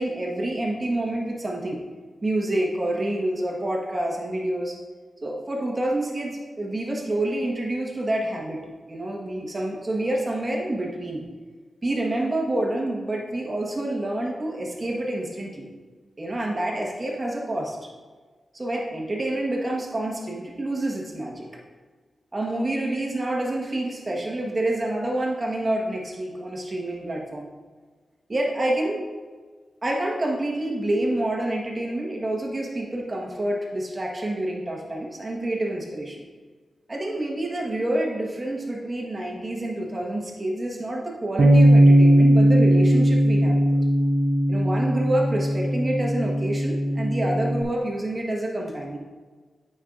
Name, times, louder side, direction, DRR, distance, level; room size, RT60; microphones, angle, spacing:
voice 1, 0.0-1.8 2.2-4.8 5.2-8.6 8.9-11.2 11.8-15.7 16.2-17.8 18.5-21.5 22.3-27.5 28.3-29.0 29.8-36.2 36.9-43.7 44.5-49.0, right 1 dB, 35° right, -1 dB, 1.4 m, -27 dB
Bass guitar, 41.4-47.6, right 1 dB, 65° right, 0.5 m, -18 dB
8.6 x 5.5 x 2.6 m, 1.4 s
cardioid pair, 70°, 0 cm